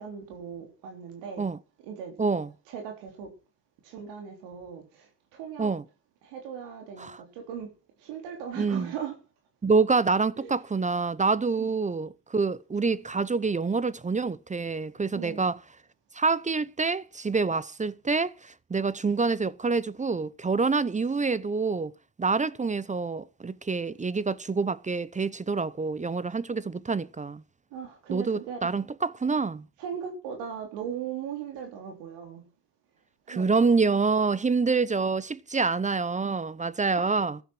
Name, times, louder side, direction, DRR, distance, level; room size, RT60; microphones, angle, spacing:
voice 1, 0.0-1.5 1.8-2.1 2.7-3.3 3.8-5.7 6.2-7.7 8.0-9.1 10.4-10.6 11.6-11.7 15.1-15.4 27.7-28.7 29.8-32.4 33.3-33.5 36.2-36.4 36.9-37.0, right 8 dB, 75° right, 3.7 m, -38 dB
voice 2, 2.2-2.5 5.6-5.8 7.0-7.2 8.6-8.9 9.6-15.6 16.1-21.9 22.2-27.4 28.1-29.6 33.3-37.4, right 4 dB, 15° right, 0.7 m, -27 dB
14.5 x 11.5 x 6.1 m
supercardioid pair, 75°, 41 cm